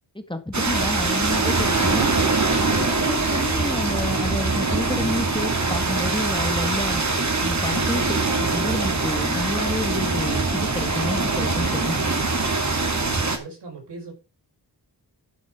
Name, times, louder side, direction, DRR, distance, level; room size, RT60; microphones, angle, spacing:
voice 1, 0.1-2.1 2.6-7.0 7.4-12.0, left 1 dB, 10° left, 2.0 m, -29 dB
sound 1, 0.5-13.4, right 3 dB, 45° right, 2.5 m, -23 dB
voice 2, 12.7-14.1, right 3 dB, 85° right, 5.3 m, -39 dB
12.0 x 6.1 x 5.0 m
wide cardioid pair, 70°, 40 cm